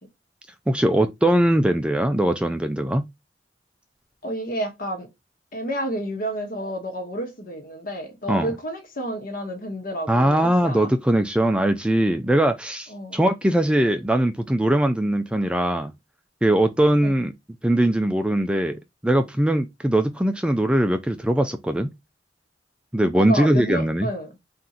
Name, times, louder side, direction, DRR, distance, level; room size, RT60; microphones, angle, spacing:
voice 1, 0.7-3.1 8.3-8.5 10.1-15.9 16.4-17.3 17.6-21.9 22.9-24.1, right 1 dB, 5° right, 0.3 m, -21 dB
voice 2, 4.2-5.1 5.5-10.9 12.9-13.2 17.0-17.2 23.1-24.4, right 1 dB, 55° left, 1.1 m, -30 dB
3.8 x 2.6 x 4.1 m
head